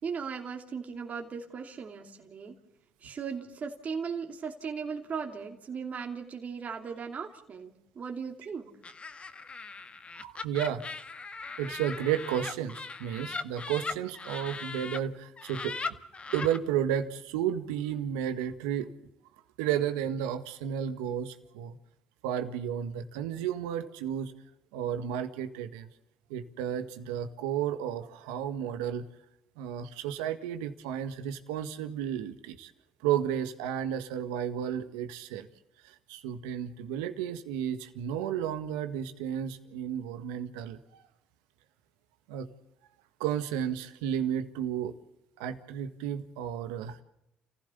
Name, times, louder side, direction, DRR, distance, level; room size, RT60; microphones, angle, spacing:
voice 1, 0.0-2.6 3.0-8.7, right 6 dB, 50° right, 3 dB, 2.9 m, -37 dB
Laughter, 8.8-15.0 15.4-16.6, left 4 dB, 35° left, 1.8 m, -39 dB
voice 2, 10.2-10.8 11.6-15.7 16.3-18.9 19.6-21.8 22.2-24.3 24.7-25.9 26.3-29.0 29.6-32.7 33.0-35.5 35.8-40.8 42.3-42.5 43.2-44.9 45.4-47.0, right 9 dB, 85° right, 9 dB, 1.7 m, -32 dB
29.0 x 16.0 x 7.0 m, 0.83 s
hypercardioid pair, 60°, 3 cm